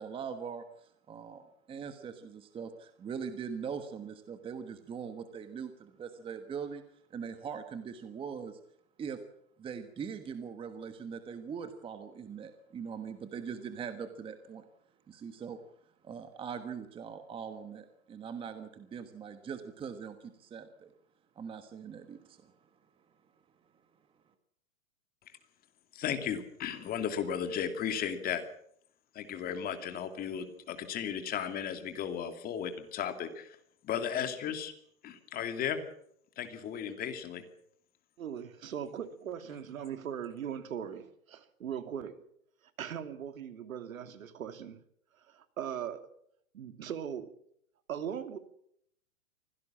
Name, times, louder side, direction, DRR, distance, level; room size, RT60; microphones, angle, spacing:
voice 1, 0.0-6.8 7.1-8.6 9.0-9.2 9.6-14.6 15.1-15.6 16.0-20.9 21.3-22.5, right 6 dB, 15° right, 9 dB, 1.3 m, -41 dB
voice 2, 25.9-28.4 29.1-33.6 33.8-34.7 35.0-35.8 36.4-37.4, left 8 dB, 20° left, 8 dB, 2.5 m, -35 dB
voice 3, 38.2-42.1 42.8-44.8 45.3-46.1 46.5-47.3 47.9-48.4, right 8 dB, 75° right, 10 dB, 2.9 m, -39 dB
24.5 x 17.0 x 7.4 m, 0.70 s
hypercardioid pair, 145°, 41 cm